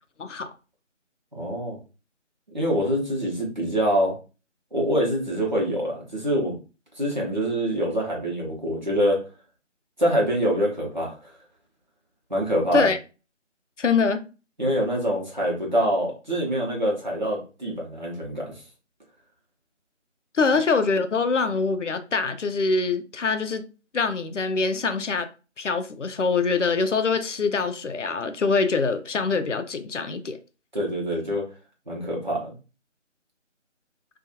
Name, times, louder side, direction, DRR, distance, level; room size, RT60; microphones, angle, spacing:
voice 1, 0.2-0.5 12.7-13.0 13.8-14.2 20.3-23.7 23.9-25.3 25.6-30.4, left 4 dB, 75° left, 0.5 m, -24 dB
voice 2, 1.3-1.8 2.5-4.1 4.7-6.5 7.0-9.2 10.0-11.1 12.3-12.9 14.6-18.6 30.7-31.4 31.9-32.5, equal, 40° right, 0.9 m, -25 dB
2.6 x 2.4 x 2.6 m
figure-of-eight pair, 165°, 37 cm